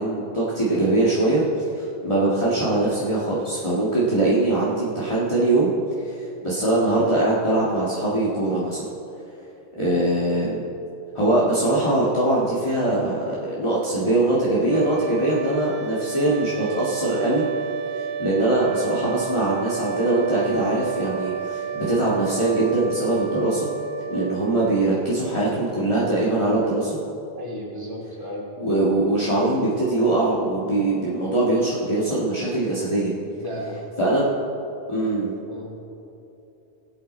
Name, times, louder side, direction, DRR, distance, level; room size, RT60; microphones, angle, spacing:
voice 1, 0.0-1.4 1.7-5.7 6.0-6.2 6.4-8.8 9.8-10.6 11.1-17.4 17.9-23.7 24.1-27.0 28.6-33.1 34.0-34.3 34.9-35.3, right 2 dB, 30° left, -8 dB, 1.8 m, -22 dB
sound 1, 14.6-25.6, right 6 dB, 70° right, 0.8 m, -31 dB
voice 2, 27.4-28.5 33.4-33.8 35.5-35.7, equal, 20° right, -4 dB, 2.4 m, -34 dB
21.0 x 7.8 x 4.3 m, 2.9 s
omnidirectional pair, 1.1 m